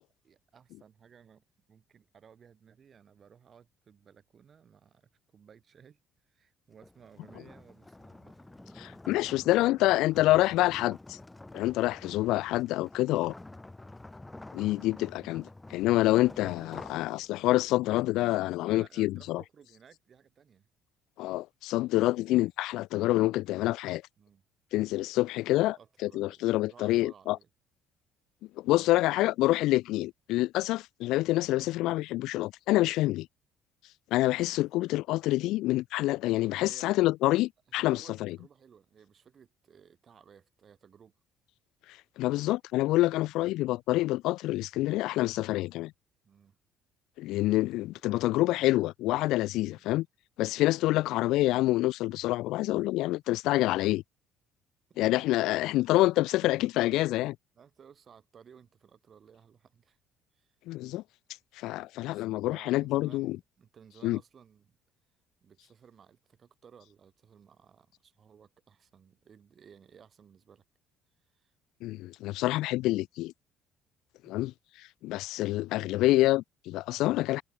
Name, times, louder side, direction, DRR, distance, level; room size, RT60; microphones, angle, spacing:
voice 1, 0.2-6.0 6.3-10.0 14.7-14.9 18.6-20.7 24.2-24.4 25.5-27.5 34.5-34.6 36.7-36.9 37.8-41.1 46.2-46.6 49.6-49.8 53.6-53.8 54.9-55.0 57.6-60.0 60.3-60.5 62.0-64.8 65.4-70.6 71.2-71.5 74.2-74.5, right 7 dB, 45° right, 8.0 m, -57 dB
sound 1, 6.7-17.7, left 2 dB, 15° left, 6.8 m, -48 dB
voice 2, 8.8-11.2 11.5-13.3 14.5-19.4 21.2-24.0 24.7-25.8 26.0-27.4 28.6-33.3 34.1-38.4 42.2-45.9 47.2-50.1 50.4-54.0 55.0-57.4 60.7-61.0 61.6-63.4 64.0-64.2 71.8-73.3 74.2-74.5 75.0-77.4, left 17 dB, 80° left, 0.3 m, -27 dB
supercardioid pair, 90°, 0 cm